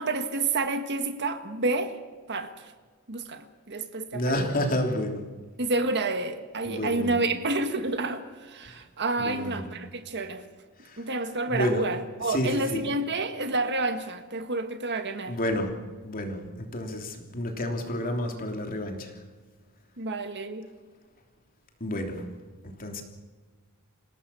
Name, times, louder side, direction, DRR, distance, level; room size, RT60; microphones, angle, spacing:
voice 1, 0.0-1.9 2.3-2.5 3.1-4.5 5.6-10.4 11.0-15.4 20.0-20.7, right 2 dB, 50° right, 8 dB, 1.7 m, -29 dB
voice 2, 4.1-5.2 6.6-7.2 8.6-8.8 9.2-9.7 10.8-11.1 11.4-11.9 12.2-12.9 15.3-15.7 16.0-19.2 21.8-22.3 22.6-23.0, left 1 dB, 40° left, 3 dB, 3.2 m, -30 dB
27.0 x 17.5 x 7.0 m, 1.5 s
head